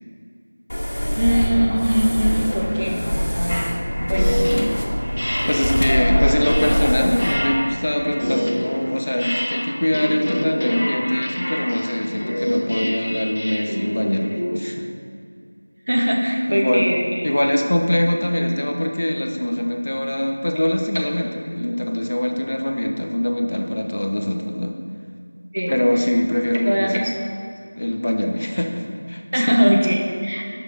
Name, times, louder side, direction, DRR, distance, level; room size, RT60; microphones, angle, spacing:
sound 1, 0.7-7.5, equal, 70° left, 2.4 m, -23 dB
voice 1, 1.1-3.0 3.3-3.7 4.1-4.5 15.9-17.3 20.9-21.0 25.5-26.0 26.6-26.9 29.3-30.6, equal, 55° right, 0 dB, 2.0 m, -21 dB
sound 2, 3.5-14.6, equal, 90° left, 1.5 m, -26 dB
voice 2, 5.5-14.9 16.5-16.9 17.2-24.8 25.7-26.9 27.8-29.6, left 1 dB, 40° left, 3 dB, 1.1 m, -23 dB
11.5 x 6.5 x 6.5 m, 2.3 s
figure-of-eight pair, 175°, 0 cm